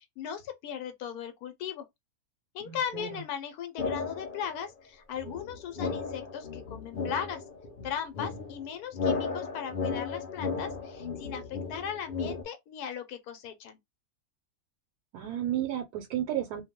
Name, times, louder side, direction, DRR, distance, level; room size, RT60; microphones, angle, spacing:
voice 1, 0.0-1.9 2.5-7.4 7.8-13.8, left 8 dB, 80° left, 1.1 m, -38 dB
voice 2, 2.6-3.2 15.1-16.6, right 11 dB, 85° right, 1.1 m, -33 dB
sound 1, 3.8-4.6 5.2-12.4, left 4 dB, 60° left, 0.5 m, -35 dB
2.5 x 2.2 x 2.7 m
omnidirectional pair, 1.6 m